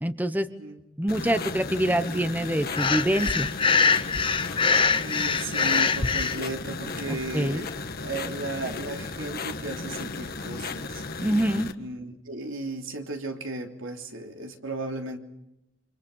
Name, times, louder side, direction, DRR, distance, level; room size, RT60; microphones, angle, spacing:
voice 1, 0.0-0.5 1.0-3.5 7.1-7.6 11.2-11.7, right 1 dB, 10° right, 10 dB, 1.0 m, -25 dB
sound 1, 1.1-11.7, left 3 dB, 50° left, 1.6 m, -35 dB
Breathing, 2.7-6.4, left 5 dB, 25° left, 0.9 m, -23 dB
voice 2, 5.0-7.7 8.0-11.0 11.8-15.2, right 2 dB, 80° right, 3 dB, 3.3 m, -35 dB
29.5 x 26.5 x 5.6 m, 0.86 s
head